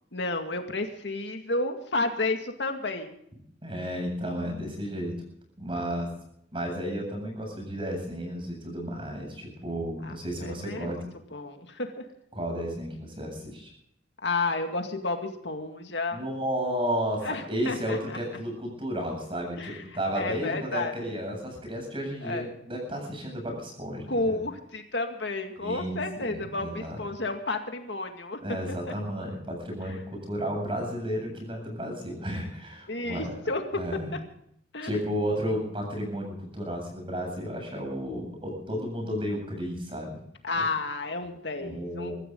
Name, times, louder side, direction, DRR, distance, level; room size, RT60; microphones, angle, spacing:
voice 1, 0.1-3.2 10.0-11.0 11.3-12.1 14.2-16.2 17.2-18.2 19.6-19.8 20.1-20.9 22.2-22.5 24.1-28.4 29.8-30.0 32.9-33.8 34.7-35.0 40.4-42.1, left 2 dB, 70° left, 5 dB, 2.2 m, -31 dB
voice 2, 3.6-5.2 5.6-6.1 6.5-11.0 12.3-13.7 16.1-24.4 25.6-27.1 28.4-33.4 33.8-34.1 34.8-40.2 40.6-40.7 41.6-42.1, equal, 30° right, 2 dB, 7.9 m, -33 dB
24.0 x 14.5 x 3.9 m, 0.71 s
head